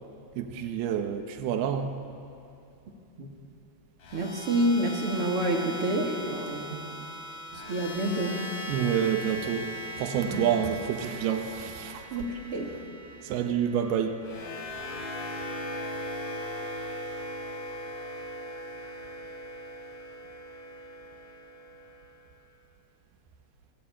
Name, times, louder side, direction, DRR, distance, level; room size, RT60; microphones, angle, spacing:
voice 1, 0.4-1.9 8.7-9.7 10.0-12.0 13.3-14.2, right 8 dB, 70° right, 5 dB, 3.0 m, -28 dB
sound 1, 4.0-22.2, equal, 55° left, 4.6 m, -39 dB
voice 2, 4.1-6.8 7.5-8.4 10.2-10.5 12.1-12.8, right 1 dB, 35° right, 0 dB, 3.0 m, -28 dB
27.0 x 19.0 x 8.8 m, 2.6 s
omnidirectional pair, 4.9 m